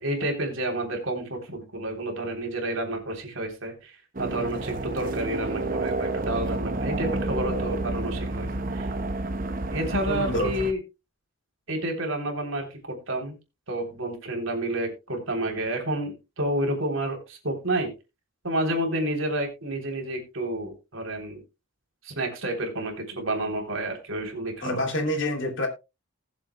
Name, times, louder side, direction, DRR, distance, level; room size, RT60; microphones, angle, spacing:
voice 1, 0.0-8.9 9.7-10.8 11.7-13.3 13.7-17.9 18.4-21.4 22.0-24.8, right 1 dB, 70° right, 3 dB, 3.3 m, -30 dB
sound 1, 4.1-10.7, right 2 dB, 40° right, 0.9 m, -30 dB
voice 2, 10.1-10.5 24.6-25.7, left 1 dB, 60° left, 3 dB, 2.9 m, -27 dB
20.0 x 7.3 x 2.2 m, 0.26 s
head